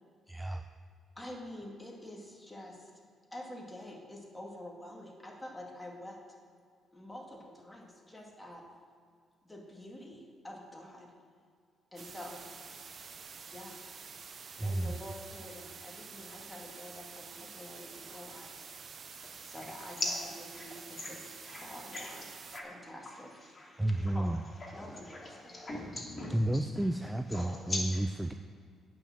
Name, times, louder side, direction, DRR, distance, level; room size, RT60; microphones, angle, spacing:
voice 1, 0.3-0.6 14.6-15.0 23.8-24.4 26.3-28.3, right 1 dB, 5° right, 7 dB, 0.4 m, -31 dB
voice 2, 1.2-2.9 3.3-6.2 6.9-8.6 9.4-11.1 11.9-12.5 13.4-13.8 14.6-18.7 19.4-20.0 20.6-21.3 21.6-22.3 22.6-23.3 24.1-24.3 24.7-25.6, left 1 dB, 10° left, -1 dB, 2.2 m, -47 dB
sound 1, 12.0-22.6, right 5 dB, 45° right, 0.8 m, -48 dB
voice 3, 19.2-19.7 20.0-24.2 24.6-26.9 27.3-28.1, left 2 dB, 30° left, -2 dB, 2.9 m, -41 dB
8.8 x 6.2 x 7.3 m, 2.2 s
cardioid pair, 90°, 0 cm